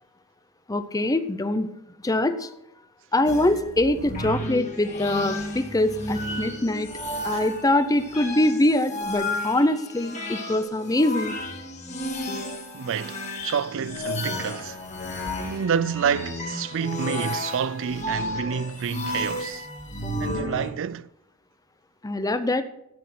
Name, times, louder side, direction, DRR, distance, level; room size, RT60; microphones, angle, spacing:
voice 1, 0.7-1.7 2.0-2.5 3.1-6.9 7.2-11.4 22.0-22.6, left 1 dB, 15° left, 0.6 m, -23 dB
sound 1, 3.3-20.7, left 1 dB, 35° left, 2.0 m, -33 dB
voice 2, 12.7-14.8 15.4-19.7 20.2-21.1, right 7 dB, 60° right, 0.4 m, -28 dB
12.5 x 8.2 x 5.9 m
head